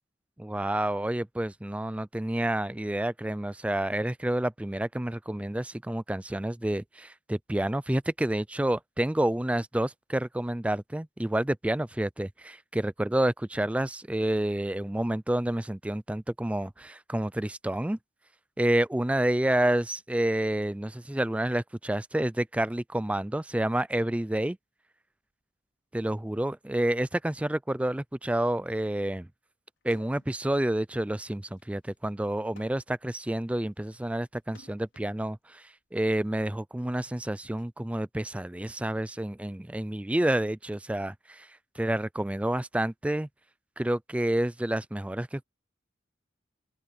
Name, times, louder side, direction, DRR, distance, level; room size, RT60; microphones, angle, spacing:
voice 1, 0.4-18.0 18.6-24.6 25.9-29.3 29.8-41.5 41.8-43.3 43.8-45.4, right 1 dB, 5° right, 0.3 m, -29 dB
sound 1, 29.8-30.4 30.7-35.1 36.0-37.6, left 2 dB, 70° left, 4.6 m, -59 dB
open air
head